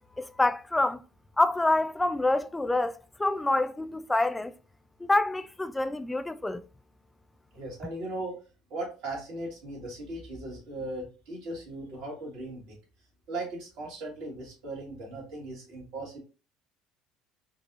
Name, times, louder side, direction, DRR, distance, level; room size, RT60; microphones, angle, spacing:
voice 1, 0.2-1.0 1.4-4.5 5.0-6.6, left 2 dB, 10° left, 0.3 m, -27 dB
voice 2, 7.5-8.4 8.7-12.8 13.3-16.2, right 2 dB, 60° right, 1.9 m, -38 dB
4.6 x 2.7 x 2.5 m
figure-of-eight pair, 65°, 0 cm